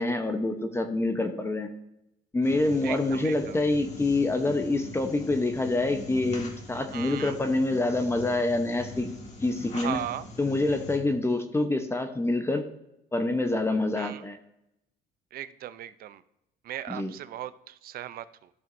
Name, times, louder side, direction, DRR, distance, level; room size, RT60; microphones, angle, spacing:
voice 1, 0.0-1.7 2.3-9.1 9.4-10.0 10.4-12.6 13.1-14.4 16.9-17.1, left 2 dB, 15° left, 7 dB, 0.8 m, -26 dB
sound 1, 2.4-11.0, left 2 dB, 40° left, 1.8 m, -42 dB
voice 2, 2.8-3.6 6.9-7.4 9.7-10.3 14.0-14.2 15.3-16.2 16.6-18.5, right 12 dB, 60° right, 14 dB, 0.6 m, -37 dB
14.0 x 6.0 x 2.6 m, 0.84 s
cardioid pair, 110°, 17 cm